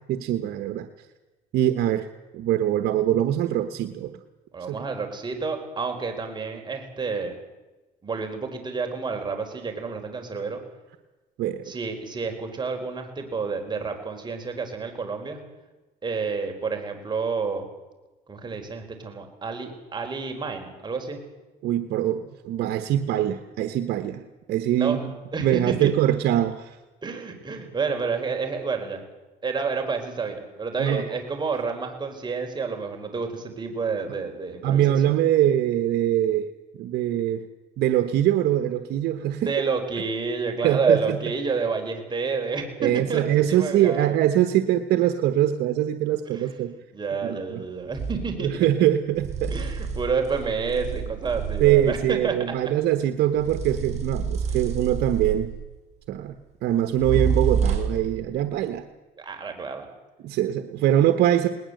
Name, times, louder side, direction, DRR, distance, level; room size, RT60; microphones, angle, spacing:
voice 1, 0.1-0.9 1.5-2.1 2.3-4.1 4.7-4.8 11.4-11.7 21.6-25.1 25.4-26.8 30.8-31.0 34.6-36.5 36.8-37.4 37.8-39.5 40.6-41.0 42.8-46.7 47.2-47.6 48.4-49.5 51.6-55.5 56.1-56.3 56.6-58.8 60.2-61.5, right 11 dB, 75° right, 9 dB, 1.2 m, -23 dB
voice 2, 4.5-7.4 8.0-10.6 11.6-15.4 16.0-17.6 18.3-21.2 24.8-25.1 25.3-25.9 27.0-29.0 29.4-35.1 39.4-43.2 43.5-44.1 46.3-48.7 49.5-52.3 54.5-54.6 59.2-59.9, right 4 dB, 25° right, 4 dB, 4.5 m, -29 dB
sound 1, 47.9-48.3 49.2-52.2 53.4-55.6 57.0-58.1, right 6 dB, 40° right, 5.3 m, -28 dB
20.0 x 19.5 x 7.9 m, 1.1 s
cardioid pair, 110°, 17 cm